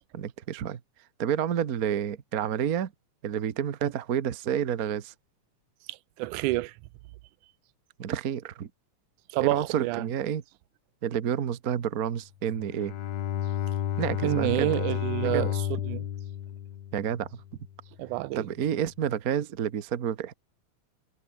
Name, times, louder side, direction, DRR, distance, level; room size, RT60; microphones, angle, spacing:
voice 1, 0.1-0.8 1.2-2.9 3.2-5.1 8.0-8.7 9.4-10.4 11.0-12.9 14.0-14.7 15.2-15.5 16.9-17.4 18.3-20.3, right 9 dB, 60° right, 0.9 m, -29 dB
voice 2, 5.9-6.7 9.3-10.1 14.2-16.1 18.0-18.5, right 19 dB, 85° right, 2.1 m, -29 dB
Bowed string instrument, 12.5-17.7, left 10 dB, 60° left, 2.5 m, -32 dB
omnidirectional pair, 3.5 m